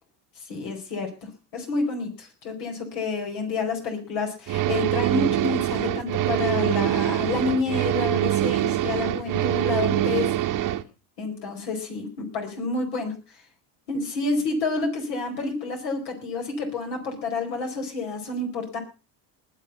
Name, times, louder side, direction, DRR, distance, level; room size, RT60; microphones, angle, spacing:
voice 1, 0.5-10.3 11.2-13.2 13.9-18.8, left 3 dB, 80° left, 3 dB, 4.7 m, -29 dB
sound 1, 4.5-10.8, right 13 dB, 40° right, 0.9 m, -24 dB
20.0 x 7.6 x 5.4 m, 0.33 s
hypercardioid pair, 80°, 48 cm